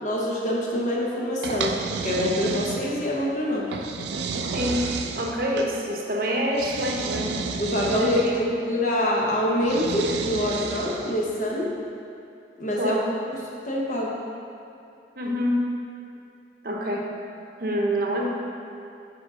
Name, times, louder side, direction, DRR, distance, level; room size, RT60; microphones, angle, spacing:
voice 1, 0.0-1.7 2.0-3.7 7.6-11.7 12.6-13.0 13.6-14.1, left 1 dB, 45° left, -3 dB, 1.0 m, -25 dB
sound 1, 1.4-3.1 3.7-5.7 6.5-8.4 9.6-11.2, right 4 dB, 75° right, 0.4 m, -31 dB
voice 2, 4.5-4.8 5.2-7.3 8.0-8.4 12.8-13.1 15.2-15.6 16.6-17.1 17.6-18.3, equal, 55° right, -1 dB, 0.8 m, -26 dB
9.0 x 3.8 x 3.7 m, 2.7 s
head